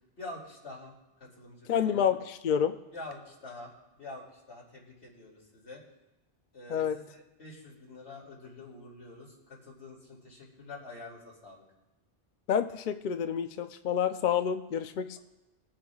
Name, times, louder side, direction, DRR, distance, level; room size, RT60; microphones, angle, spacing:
voice 1, 0.2-0.9 1.2-2.0 2.9-5.8 6.5-11.6, left 2 dB, 85° left, -3 dB, 3.0 m, -46 dB
voice 2, 1.7-2.7 6.7-7.0 12.5-15.2, left 8 dB, 55° left, 8 dB, 0.6 m, -28 dB
22.5 x 8.7 x 2.3 m, 1.0 s
omnidirectional pair, 1.1 m